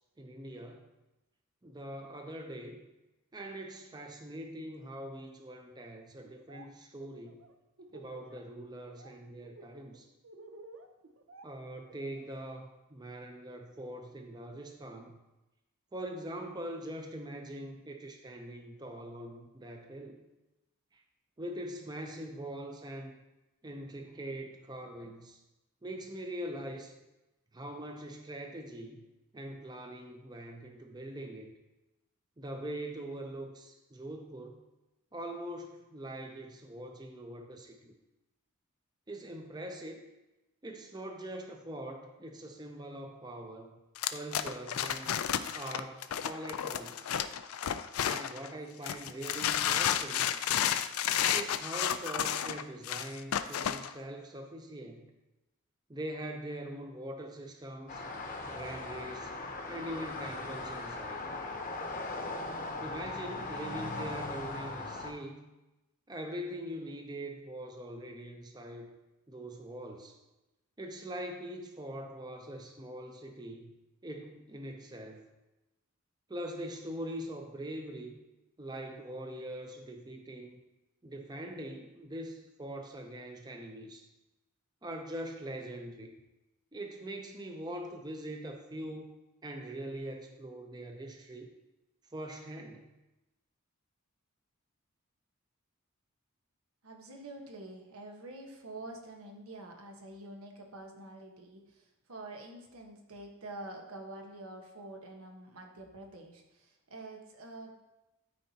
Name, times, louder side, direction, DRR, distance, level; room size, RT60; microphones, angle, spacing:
voice 1, 0.2-0.9 1.6-2.8 3.3-7.4 7.9-10.1 11.4-15.2 15.9-20.2 20.9-21.0 21.4-23.1 23.6-25.4 25.8-26.9 27.5-29.0 29.3-31.5 32.4-34.6 35.1-37.9 39.1-40.0 40.6-43.8 44.1-45.2 45.5-47.1 48.0-50.3 51.3-55.1 55.9-58.0 58.5-59.4 59.7-61.3 62.8-65.5 66.1-68.9 69.3-70.2 70.8-73.7 74.0-75.2 76.3-78.2 78.6-80.6 81.0-84.0 84.8-86.1 86.7-89.1 89.4-91.5 92.1-92.9, right 1 dB, 20° right, 3 dB, 0.6 m, -42 dB
Laughter, 6.2-6.7 7.0-8.4 8.7-9.1 9.4-12.3, right 2 dB, 65° right, 0.7 m, -53 dB
sound 1, 44.0-48.5 48.8-53.9, left 10 dB, 85° left, 0.4 m, -31 dB
sound 2, 57.9-65.1, left 2 dB, 40° left, 0.8 m, -39 dB
voice 2, 96.8-107.8, right 2 dB, 90° right, 2 dB, 1.2 m, -47 dB
13.0 x 4.4 x 2.8 m, 1.0 s
head